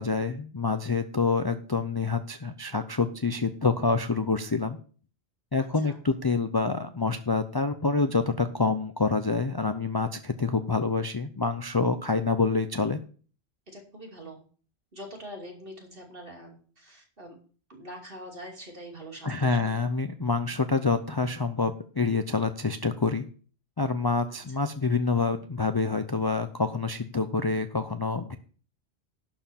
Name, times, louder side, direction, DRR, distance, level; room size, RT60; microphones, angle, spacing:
voice 1, 0.0-4.8 5.5-13.0 19.2-23.2 23.8-28.4, left 4 dB, 30° left, 8 dB, 0.5 m, -27 dB
voice 2, 5.6-6.0 13.7-14.4 14.9-17.4 17.7-19.8 24.3-24.6, equal, 55° right, 0 dB, 3.0 m, -44 dB
11.5 x 4.5 x 7.0 m, 0.41 s
omnidirectional pair, 1.1 m